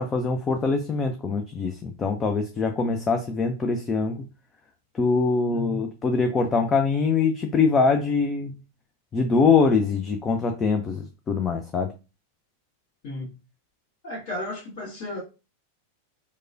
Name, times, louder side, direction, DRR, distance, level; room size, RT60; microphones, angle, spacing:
voice 1, 0.0-4.3 4.9-8.6 9.1-11.9, left 4 dB, 20° left, 0.4 m, -23 dB
voice 2, 5.5-5.8 13.0-13.3 14.0-15.2, left 1 dB, 50° left, 1.6 m, -34 dB
4.7 x 2.2 x 2.6 m
figure-of-eight pair, 90°, 0 cm